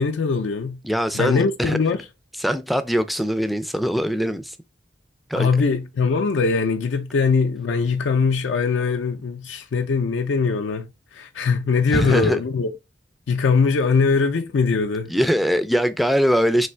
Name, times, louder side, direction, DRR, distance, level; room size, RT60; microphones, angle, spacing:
voice 1, 0.0-0.8 1.1-2.0 5.4-10.9 11.1-12.7 13.3-15.1, left 4 dB, 80° left, 0.4 m, -21 dB
voice 2, 0.8-1.8 2.4-4.5 5.3-5.5 11.9-12.4 15.1-16.7, equal, ahead, 0.3 m, -21 dB
3.3 x 2.7 x 4.3 m
head